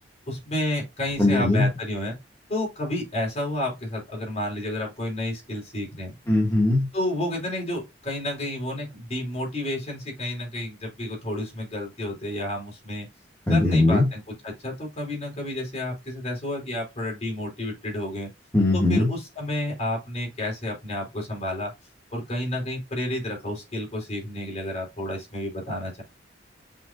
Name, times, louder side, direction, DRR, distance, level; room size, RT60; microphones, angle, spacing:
voice 1, 0.3-2.2 2.5-6.1 6.9-13.1 13.5-18.3 18.7-21.7 22.1-26.0, left 1 dB, 35° left, 4.8 m, -31 dB
voice 2, 1.2-1.7 6.3-6.9 13.5-14.1 18.5-19.1, left 2 dB, 15° left, 2.4 m, -20 dB
7.5 x 6.0 x 2.8 m
head